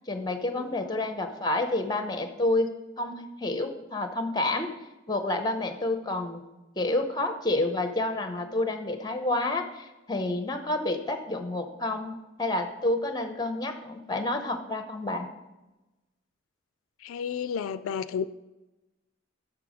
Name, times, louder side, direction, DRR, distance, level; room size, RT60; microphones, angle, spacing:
voice 1, 0.1-2.7 3.0-4.7 5.1-6.4 6.8-15.3, left 2 dB, 20° left, 7 dB, 0.7 m, -29 dB
voice 2, 17.0-18.3, left 7 dB, 80° left, 14 dB, 0.3 m, -32 dB
6.8 x 6.1 x 5.0 m, 1.0 s
head